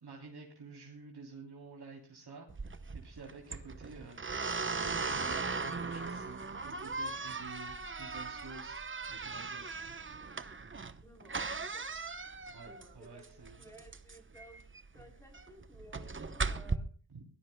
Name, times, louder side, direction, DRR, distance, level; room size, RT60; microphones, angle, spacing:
voice 1, 0.0-4.2 4.7-8.8 9.1-9.9 12.5-13.7 17.1-17.2, right 4 dB, 55° right, -1 dB, 3.3 m, -50 dB
sound 1, 2.5-16.8, right 4 dB, 25° right, 0.9 m, -38 dB
voice 2, 11.0-11.9 12.6-14.6 14.9-16.9, equal, 5° left, 2 dB, 3.4 m, -57 dB
23.0 x 17.5 x 2.2 m, 0.37 s
wide cardioid pair, 100°, 45 cm